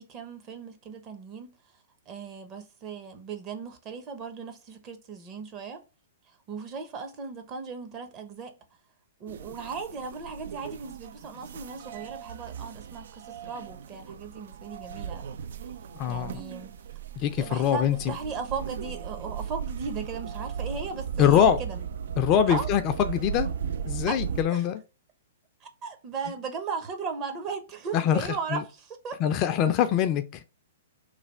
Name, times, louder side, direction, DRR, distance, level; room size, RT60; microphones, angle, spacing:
voice 1, 0.0-1.5 2.1-5.8 6.5-8.5 9.2-15.3 16.1-16.7 17.4-21.8 22.5-22.7 24.5-24.6 25.6-29.2, right 5 dB, 30° right, 0.8 m, -37 dB
sound 1, 9.3-24.4, right 7 dB, 65° right, 0.3 m, -37 dB
voice 2, 15.9-16.4 17.2-18.1 21.2-21.6 22.2-23.5 23.9-24.8 27.9-28.6 29.2-30.4, left 9 dB, 35° left, 0.4 m, -24 dB
3.3 x 2.3 x 4.3 m
hypercardioid pair, 120°, 0 cm